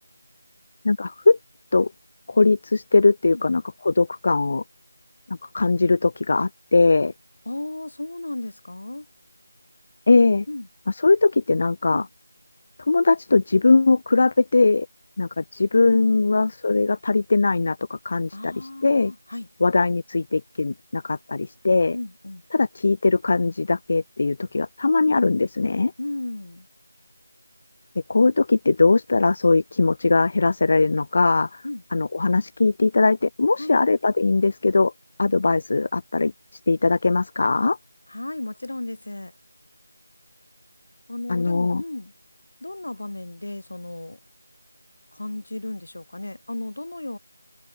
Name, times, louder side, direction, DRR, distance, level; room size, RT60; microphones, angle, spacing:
voice 1, 0.8-1.4 1.7-1.9 2.3-4.6 5.5-7.1 10.1-10.5 10.9-12.0 12.9-14.9 15.2-19.1 19.6-22.0 22.5-25.9 28.1-31.6 31.9-34.9 35.2-36.3 36.7-37.8 41.3-41.8, left 3 dB, 35° left, 0.4 m, -20 dB
voice 2, 7.5-9.1 10.5-10.7 11.9-12.1 15.9-16.0 18.3-19.5 21.9-22.4 26.0-26.7 31.6-31.8 33.6-33.8 38.1-39.3 41.1-42.1 42.6-44.2 45.1-47.2, left 2 dB, 60° left, 2.7 m, -34 dB
figure-of-eight pair, 165°, 0 cm